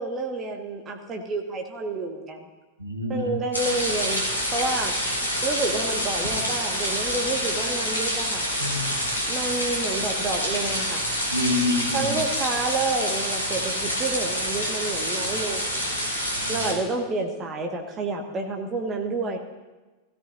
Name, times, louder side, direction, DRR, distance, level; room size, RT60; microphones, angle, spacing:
voice 1, 0.0-2.4 3.1-4.2 4.5-4.9 5.4-8.4 9.3-11.0 11.9-15.7 16.5-19.4, right 3 dB, 25° right, 1 dB, 1.6 m, -29 dB
voice 2, 2.8-3.3 8.6-8.9 11.3-12.1 16.4-16.6, left 2 dB, 85° right, 2 dB, 2.6 m, -27 dB
sound 1, 3.5-16.7, equal, 80° left, 3.5 m, -27 dB
16.0 x 16.0 x 2.7 m, 1.2 s
figure-of-eight pair, 90°, 0 cm